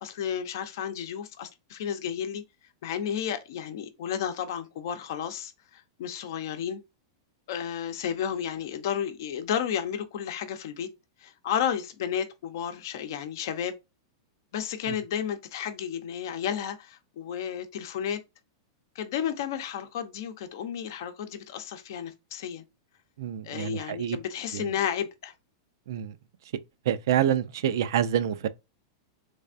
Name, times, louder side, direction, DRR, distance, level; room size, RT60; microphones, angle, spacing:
voice 1, 0.0-2.4 2.8-6.8 7.5-10.9 11.2-13.8 14.5-18.2 18.9-22.6 23.4-25.3, left 8 dB, 60° left, 0.7 m, -32 dB
voice 2, 23.2-24.2 24.5-24.7 25.9-26.2 26.9-28.5, right 10 dB, 70° right, 0.4 m, -27 dB
3.4 x 3.3 x 2.5 m
supercardioid pair, 150°, 2 cm